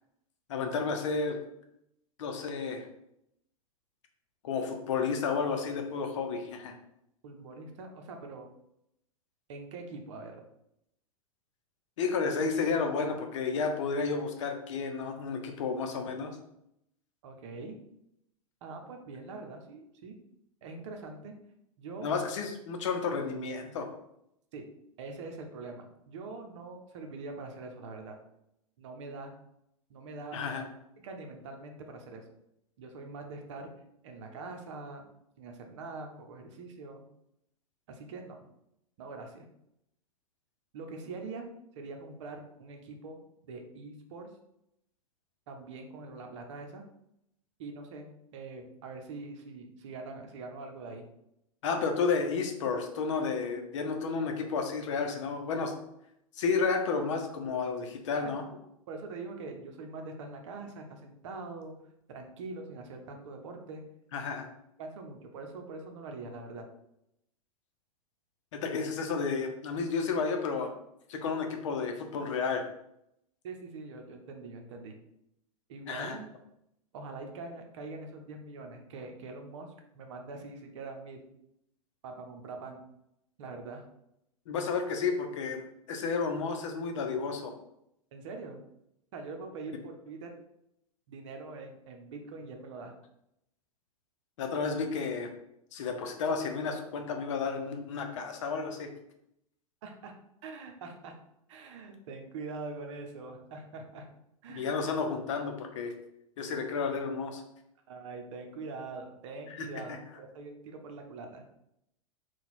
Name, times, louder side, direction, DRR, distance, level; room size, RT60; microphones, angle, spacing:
voice 1, 0.5-1.4 2.2-2.8 4.4-6.8 12.0-16.3 22.0-23.9 30.3-30.6 51.6-55.7 56.4-58.4 64.1-64.5 68.5-70.7 71.1-72.6 75.9-76.2 84.5-85.6 85.9-87.5 94.4-95.3 95.7-98.9 104.5-105.9 106.4-107.4 109.5-110.0, left 5 dB, 60° left, 4 dB, 0.7 m, -31 dB
voice 2, 7.2-8.5 9.5-10.3 17.2-17.8 18.6-20.2 20.6-21.3 21.8-22.1 24.5-24.7 25.0-28.2 28.8-29.3 29.9-30.7 31.0-32.2 32.8-33.7 34.0-35.1 35.4-37.0 37.9-38.4 39.0-39.4 40.7-41.5 41.8-43.2 43.5-44.3 45.5-46.8 47.6-51.1 55.5-55.6 58.2-58.3 58.9-61.7 62.1-63.8 64.8-66.7 73.4-74.9 75.7-76.3 76.9-81.3 82.0-82.9 83.4-83.8 88.1-88.6 89.1-90.4 91.1-92.9 99.8-100.1 100.4-101.1 101.5-104.1 104.4-104.7 107.9-111.6, right 3 dB, 55° right, 4 dB, 0.8 m, -43 dB
3.9 x 2.3 x 4.4 m, 0.80 s
figure-of-eight pair, 90°, 18 cm